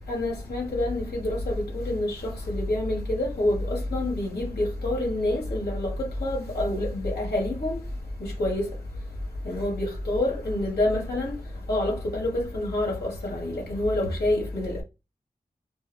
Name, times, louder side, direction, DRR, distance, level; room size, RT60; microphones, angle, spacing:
voice 1, 0.1-5.9 6.2-7.8 8.4-8.6 9.4-11.3 11.7-14.8, left 1 dB, 80° left, 2.0 m, -27 dB
5.1 x 2.0 x 3.5 m
cardioid pair, 45°, 16 cm